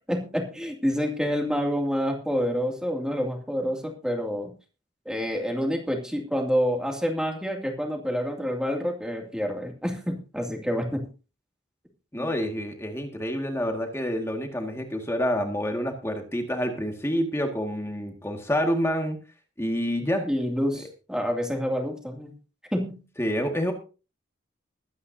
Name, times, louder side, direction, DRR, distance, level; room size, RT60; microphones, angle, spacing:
voice 1, 0.1-4.5 5.1-11.1 12.2-12.3 20.2-22.3 22.7-23.0, equal, 5° right, 2 dB, 2.4 m, -28 dB
voice 2, 12.1-19.2 19.6-20.3 20.8-20.9 23.2-23.7, equal, 15° left, 4 dB, 1.8 m, -28 dB
21.5 x 9.5 x 2.7 m, 0.33 s
head